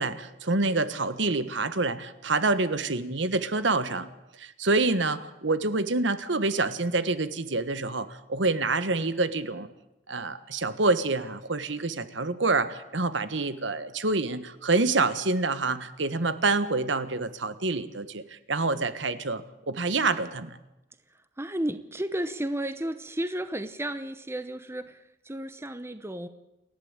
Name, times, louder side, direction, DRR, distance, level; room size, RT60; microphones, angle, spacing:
voice 1, 0.0-4.1 4.4-9.7 10.1-20.6, right 3 dB, 65° right, 12 dB, 1.4 m, -27 dB
voice 2, 21.4-26.3, right 1 dB, 15° right, 11 dB, 0.8 m, -33 dB
29.5 x 12.0 x 8.9 m, 0.94 s
head